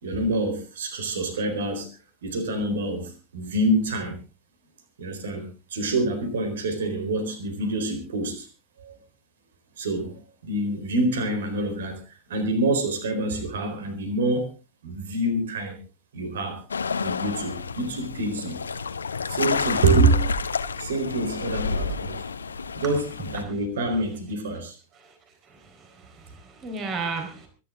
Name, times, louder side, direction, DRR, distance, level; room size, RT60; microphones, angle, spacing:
voice 1, 0.0-1.9 2.2-4.2 5.0-8.5 8.8-9.0 9.8-10.1 10.4-12.0 12.3-14.5 14.8-15.8 16.1-16.6 17.0-18.6 19.3-20.3 20.8-22.2 22.7-24.8, right 2 dB, 60° right, 7 dB, 4.2 m, -26 dB
sound 1, 16.7-23.4, left 4 dB, 75° left, 1.1 m, -29 dB
voice 2, 25.4-27.5, right 4 dB, 30° right, 5 dB, 4.5 m, -35 dB
24.0 x 11.5 x 3.8 m, 0.33 s
figure-of-eight pair, 90°, 0 cm